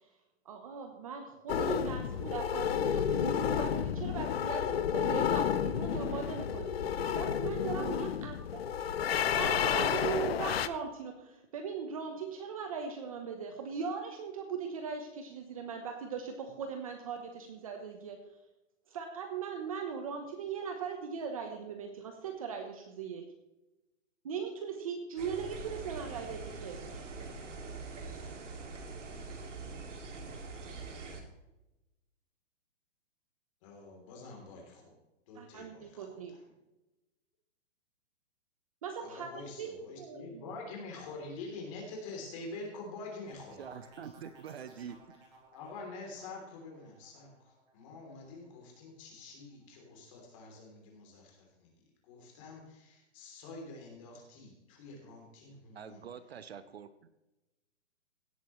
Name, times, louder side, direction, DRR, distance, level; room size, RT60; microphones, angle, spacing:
voice 1, 0.4-8.3 9.1-18.2 18.9-23.3 24.2-27.0 35.3-36.3 38.8-40.5, right 6 dB, 30° right, 5 dB, 0.9 m, -39 dB
sound 1, 1.5-10.7, left 8 dB, 55° left, 0.7 m, -31 dB
sound 2, 25.2-31.2, right 3 dB, 80° right, 2.5 m, -43 dB
voice 2, 33.6-34.9 35.3-36.2 39.0-43.6 45.5-47.3 47.7-51.7 52.1-56.0, left 3 dB, 25° left, 0 dB, 3.2 m, -46 dB
sound 3, 43.3-48.9 49.3-49.8, right 2 dB, 10° right, 1.6 m, -59 dB
voice 3, 43.6-45.1 55.7-57.1, right 7 dB, 60° right, 13 dB, 0.8 m, -45 dB
17.0 x 8.3 x 3.1 m, 0.99 s
hypercardioid pair, 170°, 36 cm